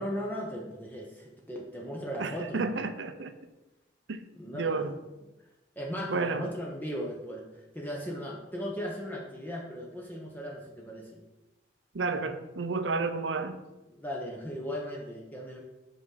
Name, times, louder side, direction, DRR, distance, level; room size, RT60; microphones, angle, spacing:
voice 1, 0.0-2.8 4.3-4.9 5.8-11.2 13.9-15.6, equal, 10° left, -2 dB, 0.9 m, -37 dB
voice 2, 2.2-3.3 4.1-4.2 4.5-4.9 6.1-6.5 11.9-13.6, right 4 dB, 85° right, 10 dB, 0.7 m, -31 dB
7.7 x 5.5 x 3.9 m, 1.0 s
head